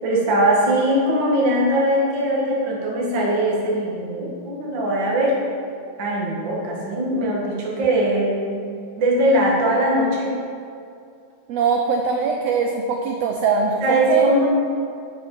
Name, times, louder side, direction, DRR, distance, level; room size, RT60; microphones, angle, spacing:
voice 1, 0.0-5.5 6.0-8.6 9.0-10.4 13.8-14.5, right 1 dB, 45° right, -4 dB, 1.9 m, -20 dB
voice 2, 11.5-14.3, right 5 dB, 85° right, 3 dB, 1.4 m, -22 dB
7.9 x 6.7 x 5.5 m, 2.4 s
omnidirectional pair, 3.5 m